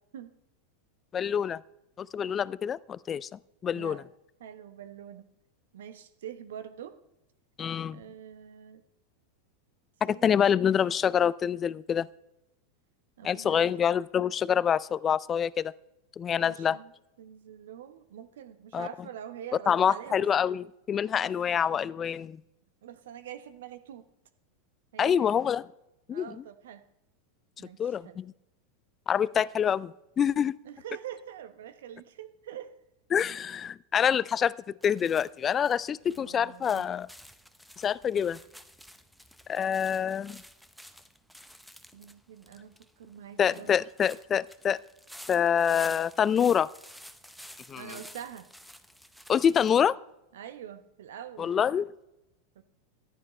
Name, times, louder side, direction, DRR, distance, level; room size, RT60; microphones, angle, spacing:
voice 1, 1.1-1.6 2.0-4.0 7.6-8.0 10.0-12.1 13.2-15.7 16.2-16.8 18.7-18.9 19.7-22.4 25.0-25.6 26.1-26.4 27.8-28.3 29.1-30.6 33.1-34.5 34.8-37.1 37.8-38.4 39.5-40.4 43.4-44.8 45.3-46.7 47.7-48.0 49.3-50.0 51.4-51.9, left 8 dB, 30° left, 20 dB, 0.3 m, -26 dB
voice 2, 4.4-5.2 5.7-7.0 7.9-8.8 10.0-10.7 13.2-13.7 16.4-16.9 17.2-20.2 21.2-21.3 22.8-24.0 24.9-25.3 26.1-26.8 27.6-28.2 30.6-32.8 36.1-36.9 41.9-43.8 47.7-48.5 50.3-51.5 52.5-52.6, right 9 dB, 70° right, 11 dB, 0.9 m, -44 dB
sound 1, 34.8-49.7, equal, ahead, 0.7 m, -51 dB
14.0 x 10.0 x 3.2 m, 0.88 s
hypercardioid pair, 90°, 0 cm